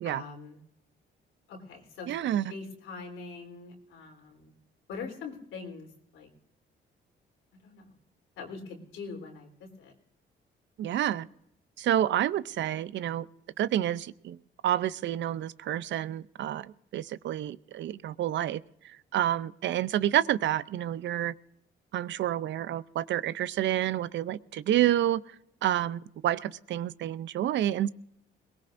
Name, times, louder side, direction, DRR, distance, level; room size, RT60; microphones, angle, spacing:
voice 1, 0.0-0.6 1.5-4.5 4.9-5.9 6.1-6.3 7.6-7.9 8.4-9.9, left 4 dB, 90° left, 2 dB, 3.5 m, -43 dB
voice 2, 2.1-2.5 10.8-11.3 11.8-13.3 13.6-14.4 14.6-21.3 21.9-25.2 25.6-27.9, right 12 dB, 65° right, 17 dB, 0.5 m, -29 dB
22.0 x 19.5 x 2.6 m, 0.76 s
cardioid pair, 90°, 20 cm